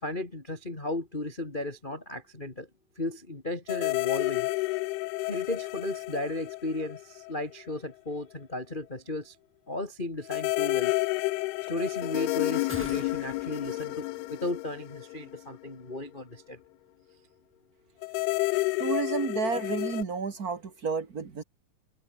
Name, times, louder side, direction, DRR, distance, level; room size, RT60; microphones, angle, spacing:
voice 1, 0.0-2.7 3.0-4.5 5.3-9.3 9.7-10.9 11.7-16.6, left 2 dB, 15° left, 2.4 m, -35 dB
sound 1, 3.7-7.4 7.7-7.8 10.3-15.7 18.0-20.0, left 22 dB, 80° left, 2.4 m, -30 dB
sound 2, 12.7-15.0 15.3-15.4, equal, 5° right, 3.2 m, -46 dB
voice 2, 18.8-21.4, right 5 dB, 45° right, 1.2 m, -31 dB
omnidirectional pair, 4.8 m